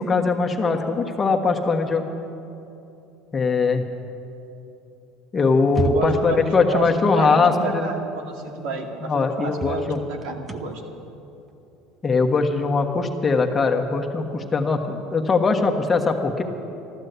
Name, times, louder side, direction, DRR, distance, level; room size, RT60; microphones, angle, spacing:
voice 1, 0.0-2.1 3.3-3.8 5.3-7.9 9.1-10.0 12.0-16.4, left 4 dB, 20° left, 3 dB, 1.3 m, -21 dB
sound 1, 5.6-6.4 8.2-8.3 8.7-8.8 9.5-13.1, right 4 dB, 20° right, 0.8 m, -32 dB
voice 2, 5.8-10.8, right 4 dB, 75° right, 2 dB, 2.1 m, -31 dB
13.5 x 12.0 x 8.1 m, 2.8 s
supercardioid pair, 120°, 0 cm